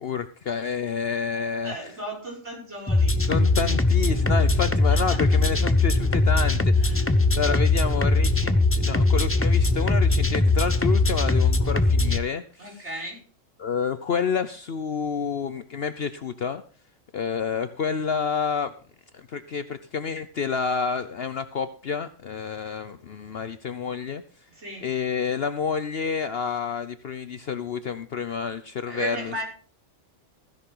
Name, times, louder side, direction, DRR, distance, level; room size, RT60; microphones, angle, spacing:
voice 1, 0.0-1.7 3.3-6.9 7.4-12.4 13.6-16.6 17.1-18.7 19.1-24.2 24.8-29.3, left 6 dB, 55° left, 11 dB, 0.9 m, -29 dB
voice 2, 1.6-3.2 4.3-4.4 4.9-5.2 6.8-7.2 12.6-13.2 24.5-24.9 28.9-29.4, right 2 dB, 55° right, -2 dB, 6.5 m, -36 dB
sound 1, 2.9-12.2, left 2 dB, 15° left, 0.6 m, -21 dB
16.0 x 10.5 x 3.8 m, 0.41 s
omnidirectional pair, 1.4 m